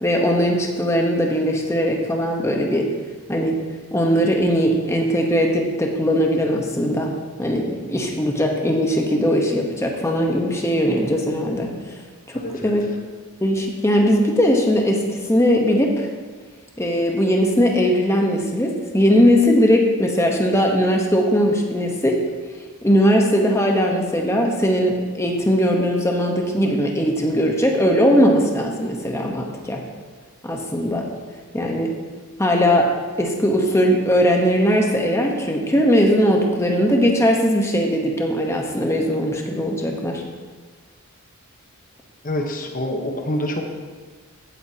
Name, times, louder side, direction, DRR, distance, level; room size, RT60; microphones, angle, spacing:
voice 1, 0.0-2.9 3.3-3.6 3.9-7.1 7.4-11.7 12.3-12.8 13.4-16.1 16.8-22.2 22.8-29.8 30.4-31.0 31.5-31.9 32.4-32.9 33.2-40.2, equal, 15° left, 1 dB, 1.1 m, -19 dB
voice 2, 12.3-12.7 42.2-43.7, left 1 dB, 40° left, 2 dB, 1.2 m, -26 dB
15.5 x 8.0 x 2.9 m, 1.4 s
head